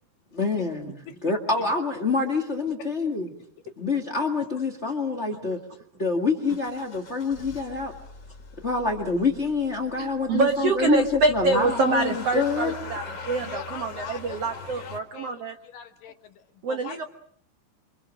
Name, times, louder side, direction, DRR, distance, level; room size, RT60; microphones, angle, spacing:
voice 1, 0.3-0.9 1.2-3.3 3.8-5.6 6.0-7.9 8.6-12.7, left 4 dB, 80° left, 4 dB, 0.6 m, -26 dB
Motor vehicle (road) / Engine starting, 6.4-15.0, left 4 dB, 25° left, 4.8 m, -42 dB
voice 2, 10.0-15.5 16.6-17.1, right 4 dB, 75° right, 6 dB, 1.4 m, -26 dB
voice 3, 13.4-17.1, left 8 dB, 60° left, 6 dB, 2.9 m, -42 dB
28.5 x 25.0 x 6.3 m, 0.63 s
omnidirectional pair, 4.9 m